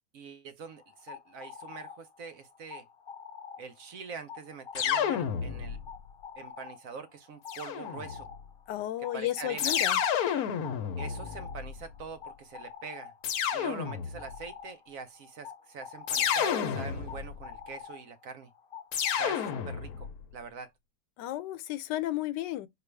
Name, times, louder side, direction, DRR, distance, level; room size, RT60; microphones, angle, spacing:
voice 1, 0.1-2.9 3.6-5.8 6.4-8.3 9.0-9.7 11.0-13.1 13.5-18.5 19.2-20.7, right 5 dB, 65° right, 0.9 m, -44 dB
sound 1, 0.6-20.1, left 7 dB, 40° left, 0.9 m, -48 dB
sound 2, 4.7-6.0 7.5-8.3 9.6-11.9 13.2-14.4 16.1-17.4 18.9-20.1, left 8 dB, 65° left, 1.1 m, -30 dB
voice 2, 8.7-10.0 21.2-22.7, left 14 dB, 85° left, 1.2 m, -33 dB
4.5 x 2.4 x 3.2 m
omnidirectional pair, 1.8 m